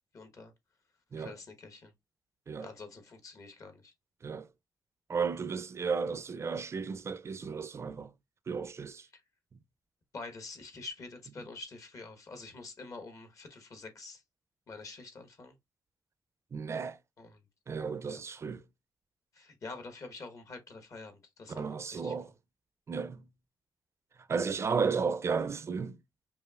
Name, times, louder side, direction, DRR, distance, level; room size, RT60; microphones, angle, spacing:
voice 1, 0.1-0.5 1.2-1.9 2.6-3.9 9.1-9.2 10.1-14.2 14.7-15.5 17.2-17.4 18.1-18.2 19.3-21.6 21.9-22.1, left 3 dB, 50° left, 1.1 m, -46 dB
voice 2, 5.1-8.1 8.5-9.1 16.5-17.0 17.7-18.6 21.5-22.3 22.9-23.3 24.3-26.0, right 5 dB, 40° right, 0.4 m, -33 dB
5.2 x 2.4 x 2.3 m
cardioid pair, 95°, 7 cm